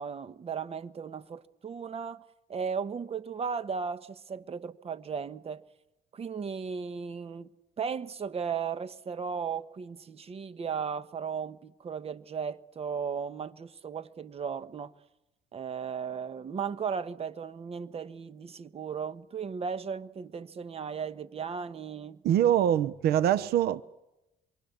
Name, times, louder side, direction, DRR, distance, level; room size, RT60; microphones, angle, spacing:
voice 1, 0.0-2.2 2.5-5.6 6.1-7.5 7.8-14.9 15.5-22.2, right 6 dB, 35° right, 1.2 m, -36 dB
voice 2, 22.2-23.8, right 10 dB, 70° right, 0.9 m, -24 dB
27.0 x 24.5 x 8.2 m
cardioid pair, 110°, 17 cm